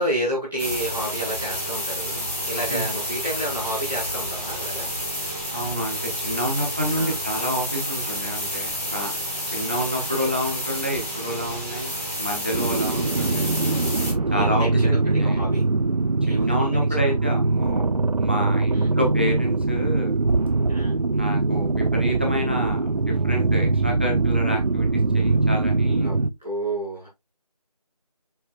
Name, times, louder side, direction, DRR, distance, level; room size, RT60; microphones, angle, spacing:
voice 1, 0.0-4.9 6.9-7.2 9.5-9.8 12.9-13.1 14.3-15.6 16.2-17.1 18.7-18.9 20.6-20.9 26.0-27.1, right 1 dB, 5° left, -15 dB, 1.3 m, -30 dB
sound 1, 0.6-14.1, equal, 20° left, 2.7 m, -30 dB
voice 2, 5.5-9.1 9.5-13.5 14.3-15.4 16.2-20.2 21.1-26.1, equal, 15° right, 1 dB, 1.0 m, -29 dB
sound 2, 12.5-26.3, right 3 dB, 70° right, 0.6 m, -22 dB
6.9 x 5.9 x 2.5 m, 0.20 s
figure-of-eight pair, 175°, 20 cm